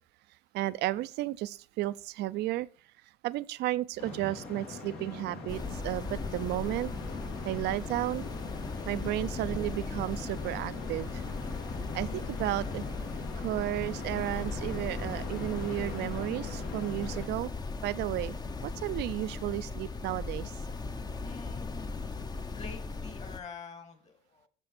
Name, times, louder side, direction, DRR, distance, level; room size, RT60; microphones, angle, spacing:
voice 1, 0.5-2.7 3.2-6.9 7.4-8.3 8.8-11.2 11.9-12.8 13.3-17.5 17.8-18.3 18.6-20.5, right 16 dB, 80° right, 0.6 m, -33 dB
sound 1, 4.0-17.3, left 3 dB, 80° left, 3.2 m, -41 dB
sound 2, 5.5-23.4, left 3 dB, 25° left, 0.8 m, -38 dB
voice 2, 11.8-12.2 21.2-21.9 22.5-24.5, left 5 dB, 40° left, 2.7 m, -47 dB
11.5 x 6.9 x 4.2 m
cardioid pair, 110°, 17 cm